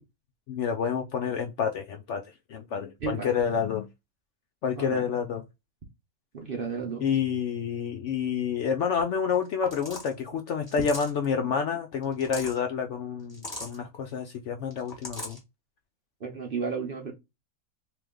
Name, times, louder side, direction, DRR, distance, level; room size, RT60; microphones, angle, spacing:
voice 1, 0.5-2.2 2.5-3.9 4.6-5.4 7.0-15.4, left 7 dB, 70° left, 0.7 m, -29 dB
voice 2, 3.0-3.3 4.8-5.1 6.3-7.1 16.2-17.1, right 5 dB, 45° right, 0.8 m, -33 dB
sound 1, 9.6-10.1 10.7-11.2 12.0-12.6 13.3-13.8 14.7-15.4, left 1 dB, 20° left, 1.3 m, -39 dB
3.1 x 3.0 x 3.5 m
omnidirectional pair, 1.6 m